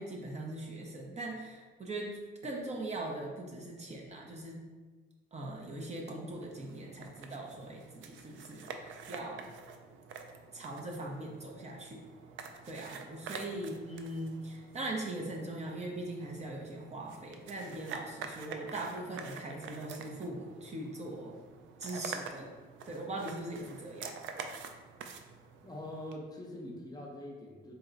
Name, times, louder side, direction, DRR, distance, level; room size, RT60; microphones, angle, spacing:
voice 1, 0.0-4.6 5.3-9.4 10.5-12.0 12.7-21.4 21.8-22.5 22.9-24.1, right 1 dB, 35° right, -1 dB, 0.6 m, -41 dB
sound 1, 6.3-26.2, right 5 dB, 75° right, 0.4 m, -47 dB
voice 2, 25.6-27.7, left 1 dB, 20° left, -1 dB, 0.7 m, -44 dB
4.0 x 2.2 x 3.8 m, 1.4 s
cardioid pair, 90°, 20 cm